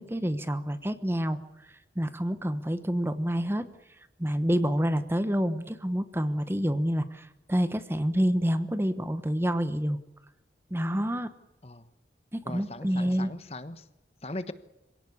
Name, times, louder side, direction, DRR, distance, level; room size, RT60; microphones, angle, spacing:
voice 1, 0.0-1.4 2.0-3.6 4.2-10.0 10.7-11.3 12.3-13.3, equal, 15° right, 11 dB, 1.1 m, -28 dB
voice 2, 12.4-13.9 14.2-14.5, left 2 dB, 35° left, 12 dB, 1.2 m, -39 dB
26.5 x 17.5 x 8.5 m, 0.97 s
head